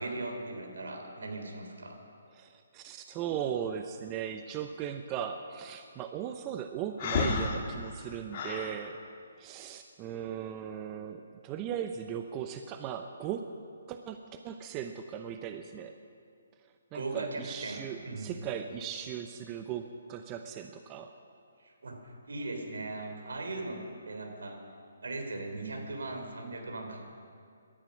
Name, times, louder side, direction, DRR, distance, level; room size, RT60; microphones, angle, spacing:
voice 1, 0.0-2.0 16.9-18.4 21.6-23.8 24.1-24.6 25.0-27.0, right 2 dB, 75° right, 4 dB, 3.2 m, -38 dB
voice 2, 2.3-9.0 9.4-13.5 13.9-16.0 16.9-21.1, right 9 dB, 25° right, 7 dB, 0.7 m, -38 dB
Breathing, 7.0-8.7, left 4 dB, 40° left, 1.9 m, -31 dB
18.5 x 12.5 x 6.3 m, 2.4 s
hypercardioid pair, 150°, 0 cm